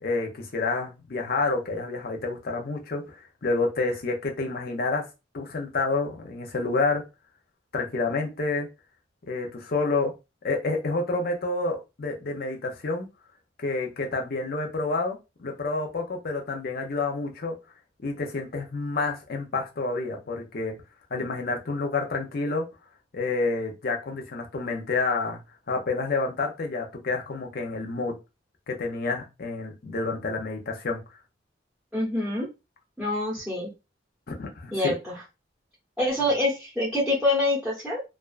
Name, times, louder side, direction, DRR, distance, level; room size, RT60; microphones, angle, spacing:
voice 1, 0.0-5.1 5.3-7.0 7.7-8.7 9.2-10.1 10.4-13.1 13.6-17.5 18.0-20.7 21.1-22.6 23.1-25.4 25.7-28.2 28.7-31.0 34.3-34.9, left 3 dB, 55° left, 2 dB, 0.6 m, -29 dB
voice 2, 31.9-32.5 33.0-33.7 34.7-35.2 36.0-38.0, left 1 dB, 5° right, -6 dB, 0.8 m, -26 dB
2.4 x 2.3 x 2.4 m, 0.26 s
head